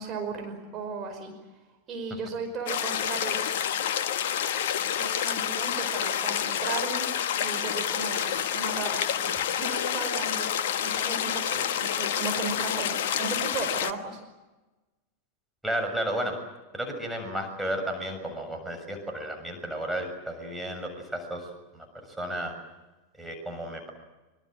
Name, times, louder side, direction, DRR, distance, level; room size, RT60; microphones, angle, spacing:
voice 1, 0.0-1.3 1.9-3.6 4.8-7.1 7.4-14.2, right 4 dB, 30° right, 4 dB, 5.4 m, -36 dB
sound 1, 2.7-13.9, left 9 dB, 55° left, 1.3 m, -28 dB
voice 2, 15.6-16.4 16.7-21.5 21.7-21.9 22.2-22.5 23.2-23.9, right 1 dB, 5° right, 3 dB, 6.8 m, -33 dB
25.5 x 25.0 x 7.8 m, 1.1 s
figure-of-eight pair, 90°, 0 cm